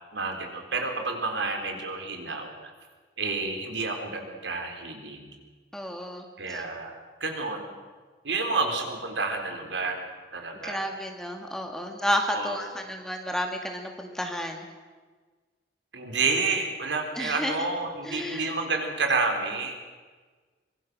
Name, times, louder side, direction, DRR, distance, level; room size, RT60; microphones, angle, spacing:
voice 1, 0.1-2.5 3.2-5.3 6.4-6.9 7.2-7.7 8.2-10.0 10.3-10.8 12.3-12.6 15.9-19.8, right 3 dB, 85° right, 4 dB, 3.9 m, -29 dB
voice 2, 5.7-6.6 10.6-14.7 17.2-17.7 18.0-18.5, equal, 5° left, 3 dB, 2.2 m, -31 dB
25.0 x 22.5 x 6.3 m, 1.4 s
head